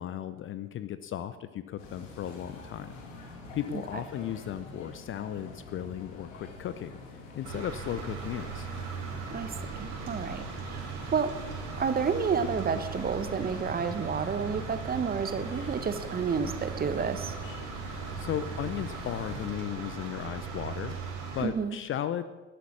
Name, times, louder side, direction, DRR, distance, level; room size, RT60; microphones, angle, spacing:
voice 1, 0.0-2.9 3.5-7.0 7.3-8.7 17.9-22.3, left 10 dB, 30° left, 13 dB, 0.6 m, -36 dB
sound 1, 1.8-19.5, left 2 dB, 65° left, 2.8 m, -45 dB
sound 2, 7.4-21.5, right 5 dB, 60° right, 3.2 m, -39 dB
voice 2, 9.3-11.3 11.8-17.3 21.4-21.8, right 6 dB, 20° right, 11 dB, 1.1 m, -30 dB
13.0 x 11.5 x 6.1 m, 1.3 s
figure-of-eight pair, 65°, 40 cm